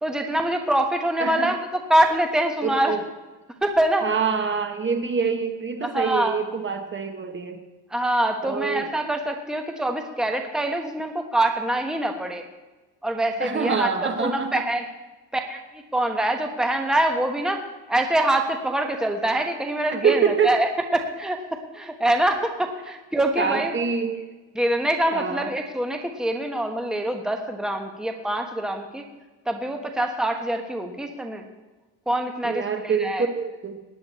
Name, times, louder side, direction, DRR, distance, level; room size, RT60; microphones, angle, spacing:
voice 1, 0.0-2.9 3.6-4.1 5.8-6.4 7.9-12.4 13.0-14.9 15.3-17.6 17.9-23.7 24.5-29.0 29.4-31.5 32.1-33.3, right 1 dB, ahead, 4 dB, 1.3 m, -25 dB
voice 2, 1.2-1.5 2.6-3.1 4.0-7.6 8.4-8.9 13.4-14.6 19.9-20.5 23.4-24.2 25.1-25.5 32.4-33.8, right 5 dB, 30° right, 6 dB, 1.2 m, -25 dB
17.5 x 10.0 x 4.3 m, 1.2 s
cardioid pair, 125°, 38 cm